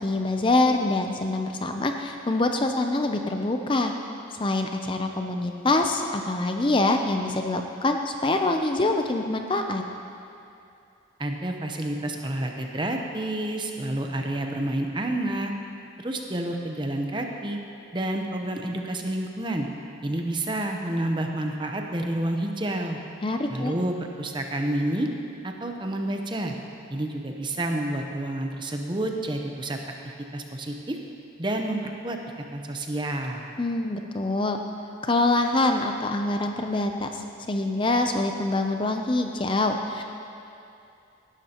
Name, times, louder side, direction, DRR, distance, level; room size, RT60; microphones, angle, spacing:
voice 1, 0.0-3.9 4.3-9.8 23.2-23.7 33.6-34.6 35.0-40.0, left 2 dB, 25° left, 4 dB, 0.5 m, -25 dB
voice 2, 11.2-15.5 16.0-17.6 17.9-19.7 20.0-23.0 23.5-25.1 25.4-26.5 26.9-29.8 30.3-31.0 31.4-32.2 32.5-33.4, right 1 dB, 25° right, 3 dB, 0.8 m, -29 dB
17.5 x 12.0 x 2.9 m, 2.6 s
head